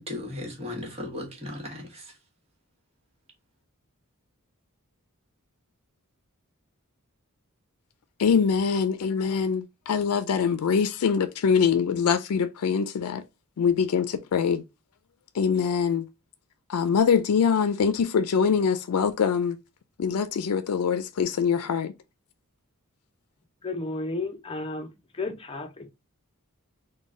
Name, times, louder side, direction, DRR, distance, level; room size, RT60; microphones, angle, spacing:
voice 1, 0.0-2.1, left 1 dB, 30° right, 1.3 m, -36 dB
voice 2, 8.2-13.2 13.6-14.6 15.3-16.1 16.7-19.6 20.0-21.9, left 6 dB, 90° left, 0.4 m, -24 dB
voice 3, 23.6-25.9, left 2 dB, 25° left, 0.6 m, -33 dB
3.8 x 2.2 x 3.6 m
head